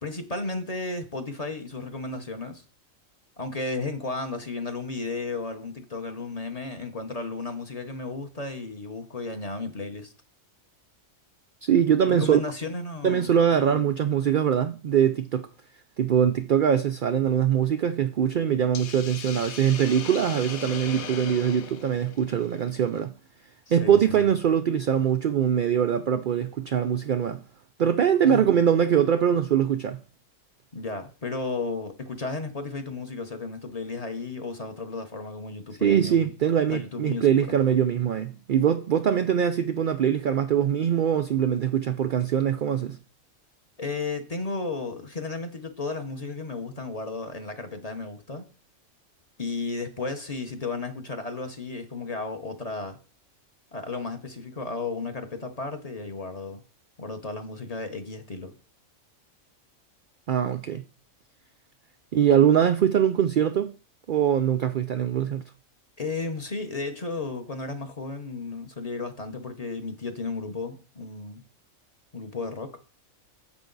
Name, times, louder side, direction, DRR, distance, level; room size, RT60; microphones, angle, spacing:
voice 1, 0.0-2.6 3.4-10.1 12.0-13.3 13.6-13.9 14.3-14.4 23.7-24.3 28.2-28.5 30.7-36.3 36.7-37.5 43.8-48.4 49.4-53.0 53.7-56.6 57.0-58.5 66.0-71.5 72.1-72.8, left 3 dB, 30° left, 0.9 m, -34 dB
voice 2, 11.6-12.4 13.0-15.5 16.0-23.1 23.7-27.4 27.8-30.0 35.8-43.0 60.3-60.8 62.1-63.7 64.1-65.4, right 9 dB, 80° right, 0.4 m, -22 dB
Hiss, 18.7-23.0, left 7 dB, 85° left, 1.2 m, -39 dB
9.8 x 7.2 x 3.9 m
omnidirectional pair, 1.4 m